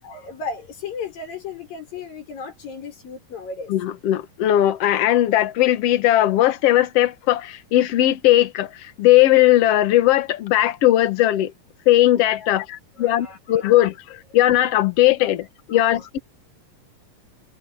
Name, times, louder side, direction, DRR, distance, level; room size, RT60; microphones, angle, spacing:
voice 1, 0.0-3.7 12.4-12.5 13.0-13.8 15.2-15.3 15.7-16.1, left 4 dB, 85° left, 7.9 m, -35 dB
voice 2, 3.7-11.5 11.9-16.2, left 14 dB, 60° left, 1.8 m, -18 dB
omnidirectional pair, 3.9 m